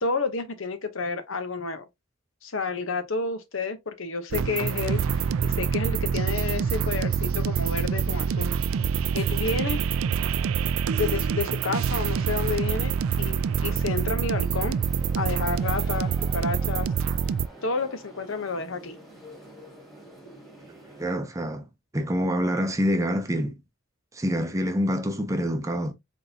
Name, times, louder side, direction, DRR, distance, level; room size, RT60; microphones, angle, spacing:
voice 1, 0.0-1.8 2.4-8.6 9.1-9.8 11.0-14.8 15.2-16.9 17.6-19.0, left 4 dB, 70° left, 0.9 m, -30 dB
sound 1, 4.3-17.5, right 7 dB, 75° right, 0.4 m, -26 dB
sound 2, 13.5-21.0, right 1 dB, ahead, 1.5 m, -46 dB
voice 2, 20.8-21.7 21.9-23.6 24.1-25.9, equal, 15° right, 0.6 m, -26 dB
4.2 x 3.8 x 2.7 m
head